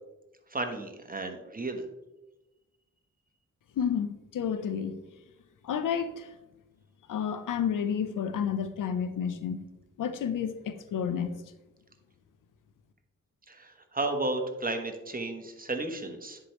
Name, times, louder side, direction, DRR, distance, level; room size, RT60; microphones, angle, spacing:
voice 1, 0.5-1.9 13.5-16.4, right 2 dB, 30° right, 1.2 m, -33 dB
voice 2, 3.8-5.0 5.6-6.3 7.1-9.6 10.0-11.4, left 7 dB, 85° left, 0.7 m, -30 dB
9.9 x 4.8 x 3.1 m
cardioid pair, 60°, 31 cm